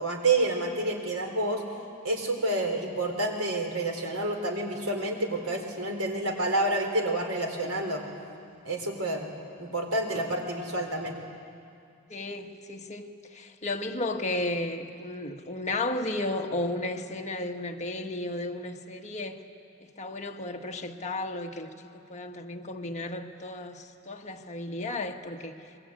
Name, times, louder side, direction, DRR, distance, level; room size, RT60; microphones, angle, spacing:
voice 1, 0.0-1.6 2.0-8.0 8.6-9.3 9.6-11.1, right 2 dB, 85° right, 3.9 m, -29 dB
voice 2, 12.1-13.0 13.3-19.4 19.8-25.5, left 2 dB, 35° left, 1.4 m, -34 dB
27.0 x 21.5 x 8.7 m
head